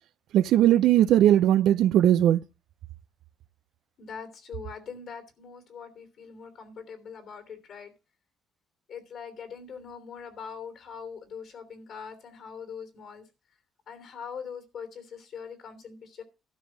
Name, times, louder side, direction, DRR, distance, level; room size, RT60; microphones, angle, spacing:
voice 1, 0.3-2.4, right 12 dB, 80° right, 0.6 m, -19 dB
voice 2, 4.0-7.9 8.9-13.2 13.9-16.2, left 6 dB, 70° left, 3.3 m, -42 dB
12.5 x 5.4 x 7.3 m
cardioid pair, 90°, 0 cm